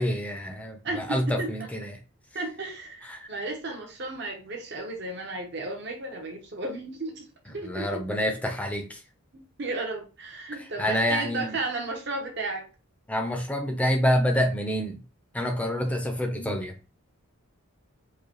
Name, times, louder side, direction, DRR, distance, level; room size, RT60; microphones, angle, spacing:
voice 1, 0.0-2.0 3.1-3.3 7.6-9.0 10.5-11.6 13.1-15.0 15.3-16.8, equal, 5° left, 0.6 m, -27 dB
voice 2, 0.8-1.5 2.3-7.2 7.5-8.0 9.6-12.7 15.8-16.0 16.4-16.5, right 2 dB, 50° right, 1.0 m, -34 dB
4.7 x 2.3 x 3.0 m
head